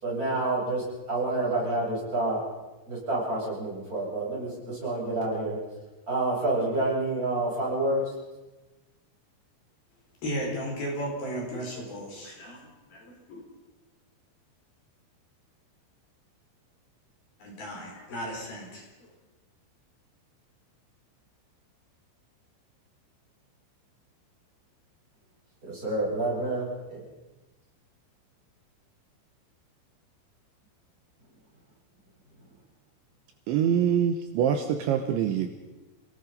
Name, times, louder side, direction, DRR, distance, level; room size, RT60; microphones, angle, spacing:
voice 1, 0.0-2.4 2.9-5.6 6.1-8.0 25.6-27.0, right 2 dB, 15° right, -4 dB, 8.2 m, -28 dB
voice 2, 10.2-13.5 17.4-19.1, equal, 45° left, -1 dB, 6.4 m, -35 dB
voice 3, 33.5-35.5, right 8 dB, 75° right, 6 dB, 3.1 m, -25 dB
28.5 x 18.5 x 5.5 m, 1.1 s
omnidirectional pair, 5.9 m